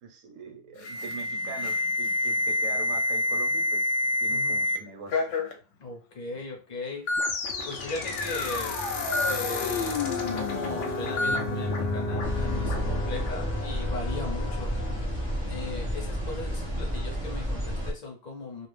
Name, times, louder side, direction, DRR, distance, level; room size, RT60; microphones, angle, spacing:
voice 1, 0.0-3.9 4.2-5.3, right 5 dB, 70° right, 4 dB, 1.0 m, -42 dB
Alarm, 0.8-4.8 5.1-5.5 6.4-6.5 7.1-7.3 9.1-9.3 11.2-11.4, left 2 dB, 70° left, 0.9 m, -27 dB
voice 2, 5.8-7.0 7.7-8.8 9.3-14.7 15.5-18.7, left 3 dB, 40° left, 1 dB, 0.7 m, -38 dB
sound 1, 7.1-16.3, left 3 dB, 85° left, 0.4 m, -32 dB
sound 2, 12.2-17.9, equal, 25° right, 0.6 m, -31 dB
2.5 x 2.0 x 3.1 m, 0.33 s
omnidirectional pair, 1.5 m